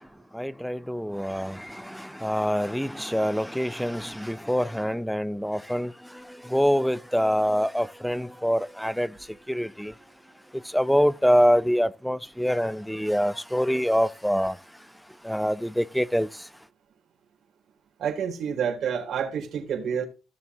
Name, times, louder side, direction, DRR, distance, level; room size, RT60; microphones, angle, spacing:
voice 1, 0.3-9.1 9.5-9.9 10.5-14.6 15.2-16.3, equal, ahead, 0.6 m, -25 dB
voice 2, 18.0-20.0, right 7 dB, 60° right, 3.8 m, -28 dB
16.0 x 7.0 x 3.2 m
supercardioid pair, 65°, 0 cm